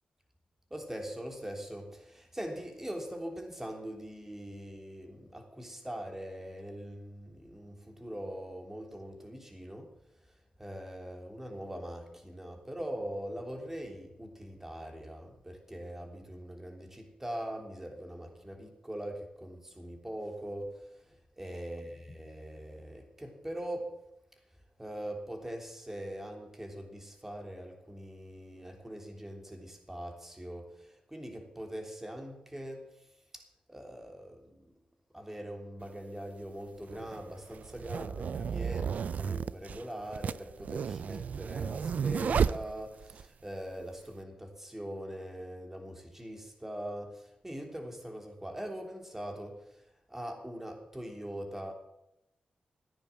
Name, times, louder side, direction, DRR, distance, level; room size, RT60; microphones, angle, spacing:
voice 1, 0.7-9.9 10.6-24.0 24.8-32.9 33.3-34.7 35.1-49.8 50.1-51.7, right 1 dB, 15° right, 3.3 m, -42 dB
sound 1, 35.8-35.9 36.8-43.2, right 7 dB, 65° right, 0.4 m, -33 dB
15.0 x 9.9 x 7.4 m
cardioid pair, 70°, 3 cm